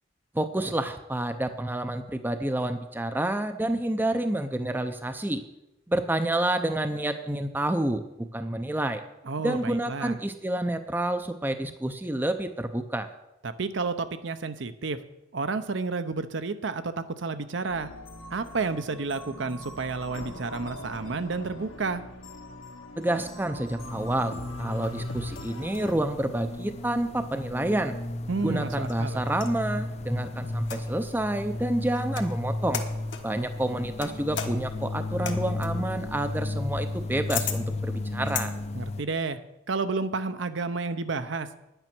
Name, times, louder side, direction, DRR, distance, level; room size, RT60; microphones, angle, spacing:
voice 1, 0.3-5.4 5.9-8.0 8.3-9.0 9.4-13.1 23.0-28.0 28.4-32.8 33.2-38.5, right 1 dB, 10° right, 8 dB, 0.5 m, -29 dB
voice 2, 9.2-10.2 13.4-15.0 15.3-17.9 18.3-22.0 28.3-29.3 38.7-39.4 39.7-41.5, right 4 dB, 60° right, 10 dB, 0.7 m, -31 dB
sound 1, 17.7-25.9, left 1 dB, 80° left, 1.7 m, -43 dB
sound 2, 23.8-39.0, left 2 dB, 30° left, 0.6 m, -34 dB
sound 3, 28.3-29.6 30.6-31.1 31.9-32.4 32.7-33.3 34.0-38.5, left 8 dB, 60° left, 1.2 m, -36 dB
10.0 x 9.0 x 6.1 m, 0.91 s
head